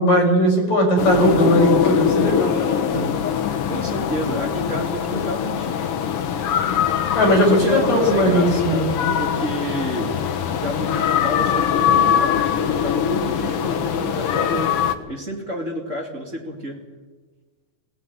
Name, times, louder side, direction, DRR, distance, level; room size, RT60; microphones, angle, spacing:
voice 1, 0.0-3.0 7.1-8.9, equal, 50° left, -1 dB, 6.4 m, -18 dB
sound 1, 1.0-14.9, left 8 dB, 90° left, 1.2 m, -22 dB
voice 2, 3.7-5.8 7.4-10.2 10.5-14.8 15.1-16.8, right 1 dB, 25° right, 1 dB, 2.2 m, -30 dB
18.5 x 17.0 x 9.4 m, 1.3 s
omnidirectional pair, 4.3 m